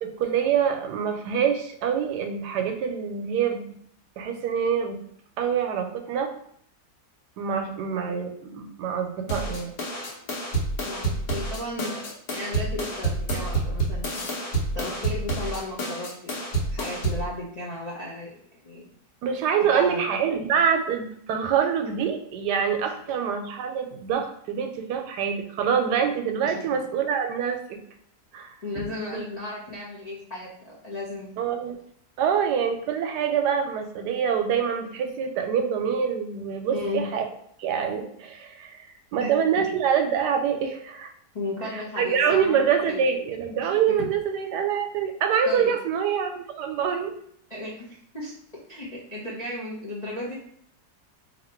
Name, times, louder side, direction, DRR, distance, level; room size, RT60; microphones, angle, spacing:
voice 1, 0.0-3.6 4.2-5.0 5.4-6.3 7.4-9.7 19.2-27.8 28.3-28.5 28.8-28.9 31.4-31.8 32.2-37.2 37.6-41.1 41.7-47.1, right 7 dB, 75° right, 5 dB, 1.1 m, -25 dB
sound 1, 9.3-17.3, right 2 dB, 70° left, 1.4 m, -28 dB
voice 2, 10.8-14.4 14.7-18.4 18.6-18.9 19.7-20.0 26.4-26.6 28.6-31.4 36.7-37.0 39.2-39.3 39.6-39.7 41.3-43.0 43.6-44.0 45.5-45.7 47.5-48.3 48.7-50.3, left 2 dB, 55° left, -6 dB, 0.4 m, -35 dB
2.8 x 2.8 x 4.3 m, 0.65 s
omnidirectional pair, 1.9 m